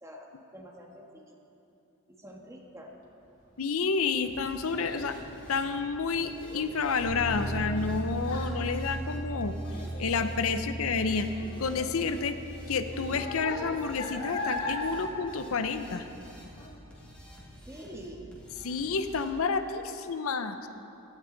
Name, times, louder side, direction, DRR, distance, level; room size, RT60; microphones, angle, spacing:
voice 1, 0.0-1.4 2.2-2.9 17.7-18.3, equal, 15° right, 0 dB, 1.4 m, -46 dB
voice 2, 3.6-5.2 5.5-9.6 10.0-11.3 11.6-12.4 12.7-16.1 18.6-20.7, left 5 dB, 85° left, 9 dB, 0.6 m, -30 dB
Child speech kid speaking, 3.6-16.2 16.5-17.0 17.5-17.6, left 2 dB, 60° left, 2.7 m, -40 dB
sound 1, 4.2-19.3, equal, 5° left, 2.3 m, -50 dB
Bass guitar, 7.0-13.2, right 1 dB, 35° right, 3.5 m, -37 dB
16.5 x 13.0 x 3.9 m, 2.9 s
head